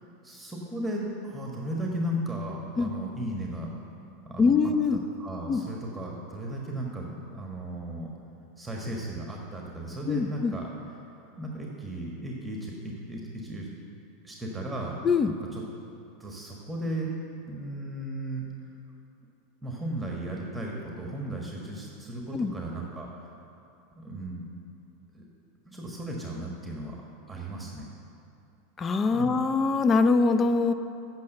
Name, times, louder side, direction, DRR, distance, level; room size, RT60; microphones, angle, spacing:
voice 1, 0.2-3.7 4.3-4.5 4.9-8.1 8.6-10.7 11.4-13.7 14.2-15.0 15.3-15.6 16.2-17.1 17.5-18.5 19.6-23.1 23.9-24.4 25.1-25.2 25.6-27.0 27.3-27.8 29.1-29.3, right 1 dB, 10° right, -1 dB, 1.4 m, -35 dB
voice 2, 4.4-5.0 5.5-5.6 10.1-10.5 15.0-15.3 22.3-22.5 28.8-30.7, left 4 dB, 25° left, 10 dB, 0.5 m, -23 dB
8.4 x 6.1 x 7.7 m, 2.7 s
hypercardioid pair, 90°, 0 cm